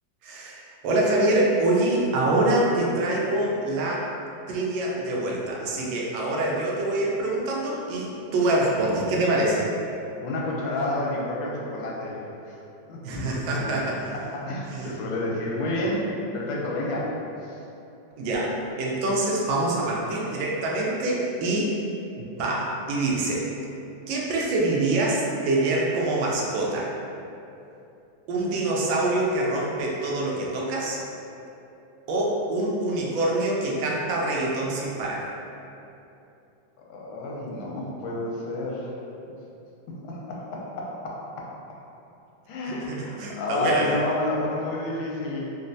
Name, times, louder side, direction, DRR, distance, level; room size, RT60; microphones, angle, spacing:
voice 1, 0.2-4.1 4.5-9.7 13.0-14.1 14.7-14.9 18.2-21.8 22.2-23.5 24.1-26.9 28.3-31.0 32.1-35.3 42.7-43.9, right 2 dB, 80° right, -3 dB, 1.3 m, -25 dB
voice 2, 10.2-12.6 12.9-13.8 14.3-17.1 17.4-17.6 36.9-38.9 40.0-41.5 42.5-45.5, left 1 dB, 90° left, -4 dB, 1.4 m, -30 dB
4.0 x 2.1 x 2.5 m, 2.8 s
omnidirectional pair, 2.1 m